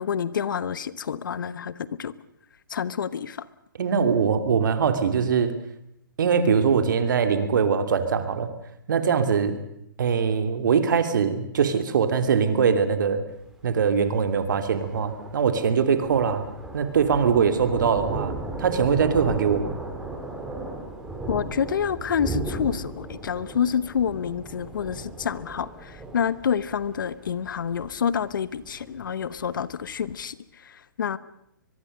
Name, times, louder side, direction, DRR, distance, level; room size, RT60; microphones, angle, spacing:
voice 1, 0.0-2.1 2.7-3.5 21.3-30.4 30.6-31.2, left 7 dB, 65° left, 16 dB, 1.2 m, -28 dB
voice 2, 3.8-5.6 6.2-8.5 8.9-9.6 10.0-13.2 13.6-16.4 16.7-19.7, right 6 dB, 60° right, 8 dB, 3.0 m, -22 dB
Thunder, 13.3-30.2, right 2 dB, 5° right, 3.9 m, -37 dB
23.5 x 22.5 x 6.7 m, 0.77 s
hypercardioid pair, 130°, 12 cm